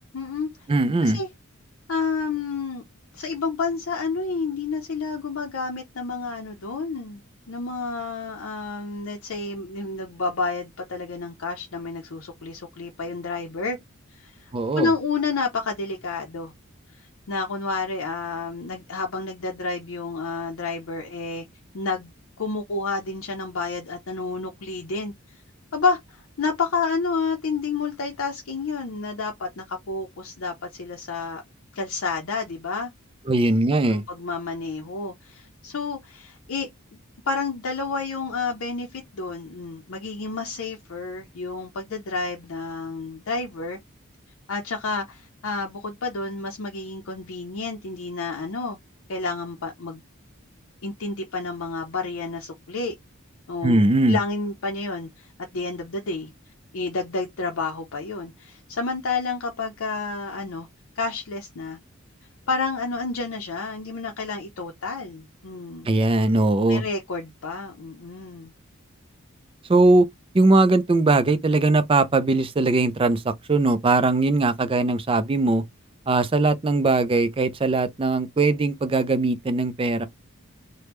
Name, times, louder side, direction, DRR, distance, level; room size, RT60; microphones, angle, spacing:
voice 1, 0.1-0.5 1.0-1.3 1.9-2.8 3.1-7.2 7.5-13.8 14.1-16.5 16.9-21.5 21.7-22.1 22.4-25.4 25.7-31.4 31.7-32.9 33.9-36.7 37.3-43.8 44.5-48.8 49.1-50.0 50.8-53.0 53.5-53.8 54.1-56.3 56.7-60.7 61.0-61.8 62.5-65.9 66.7-68.5, left 4 dB, 65° left, 0.6 m, -30 dB
voice 2, 0.7-1.2 14.5-14.9 33.3-34.0 53.6-54.2 65.9-66.8 69.7-70.1 70.3-75.6 76.1-80.1, right 2 dB, 25° right, 0.4 m, -20 dB
3.4 x 2.1 x 3.0 m
head